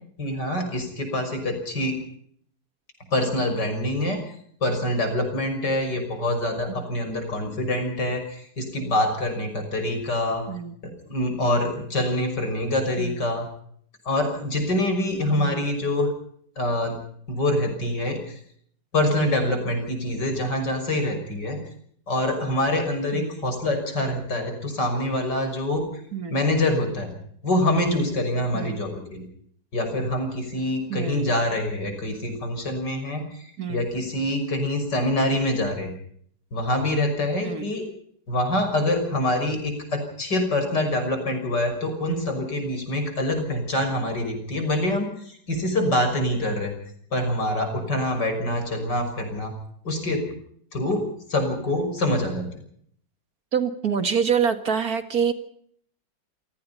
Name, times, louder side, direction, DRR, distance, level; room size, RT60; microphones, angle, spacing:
voice 1, 0.2-2.0 3.1-4.2 4.6-10.5 11.1-13.5 14.0-16.1 16.6-17.0 17.3-18.4 18.9-21.6 22.1-25.8 26.3-27.1 27.4-29.2 29.7-35.9 36.5-37.8 38.3-46.7 47.1-49.5 49.8-50.2 50.7-52.5, left 1 dB, 75° left, 6 dB, 6.6 m, -25 dB
voice 2, 15.3-15.7 23.1-23.4 26.1-26.4 28.5-28.8 30.9-31.3 33.6-33.9 37.4-37.7 53.5-55.3, right 7 dB, 55° right, 9 dB, 2.3 m, -26 dB
28.5 x 18.0 x 5.6 m, 0.63 s
omnidirectional pair, 1.9 m